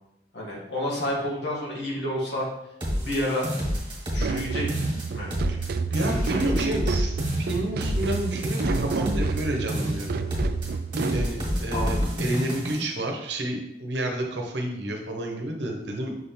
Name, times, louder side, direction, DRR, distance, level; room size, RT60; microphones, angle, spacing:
voice 1, 0.3-2.5 3.0-3.5 4.1-4.8 5.1-5.3 5.9-6.7 11.7-12.0, left 1 dB, 80° left, -5 dB, 2.3 m, -30 dB
sound 1, 2.8-4.4 4.7-5.7 5.9-9.4 9.7-10.7 10.9-12.8, equal, 30° right, 1.7 m, -28 dB
sound 2, 4.2-11.3, right 5 dB, 60° right, 0.3 m, -30 dB
voice 2, 5.9-10.2 11.1-16.2, right 1 dB, 80° right, 2 dB, 1.0 m, -30 dB
6.3 x 3.6 x 4.5 m, 0.84 s
head